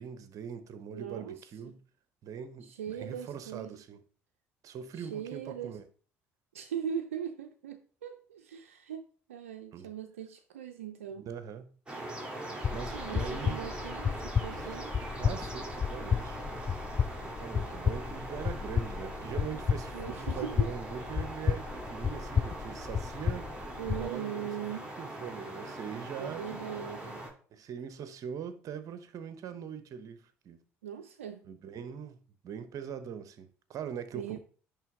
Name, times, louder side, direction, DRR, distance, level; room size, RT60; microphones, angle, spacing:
voice 1, 0.0-1.8 2.2-4.0 4.6-5.8 9.7-9.9 11.2-11.7 12.7-13.6 14.6-14.7 15.2-16.4 17.3-23.5 24.0-24.5 25.0-26.5 27.5-30.6 31.5-32.2 32.4-34.4, right 7 dB, 55° right, 0.9 m, -42 dB
voice 2, 0.9-1.8 2.6-3.8 4.9-5.8 6.5-11.3 12.9-14.9 19.9-20.7 23.8-24.9 26.2-27.3 30.8-31.5 34.1-34.4, right 8 dB, 90° right, 0.5 m, -40 dB
sound 1, 11.9-27.3, right 1 dB, 15° right, 2.6 m, -41 dB
sound 2, 12.6-24.1, left 7 dB, 30° left, 0.4 m, -33 dB
10.5 x 3.5 x 3.6 m
hypercardioid pair, 60°, 7 cm